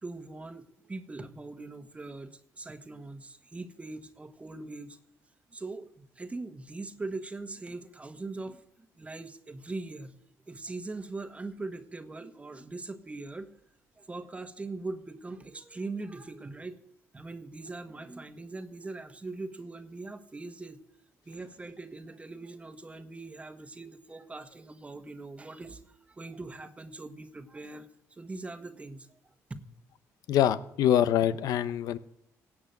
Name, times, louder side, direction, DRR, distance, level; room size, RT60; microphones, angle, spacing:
voice 1, 0.0-5.0 5.5-10.2 10.5-13.5 14.0-16.8 17.1-20.8 21.2-29.6, right 3 dB, 20° right, 9 dB, 1.4 m, -41 dB
voice 2, 30.3-32.0, left 11 dB, 75° left, 14 dB, 0.8 m, -24 dB
17.0 x 6.1 x 9.2 m, 0.78 s
cardioid pair, 90°, 6 cm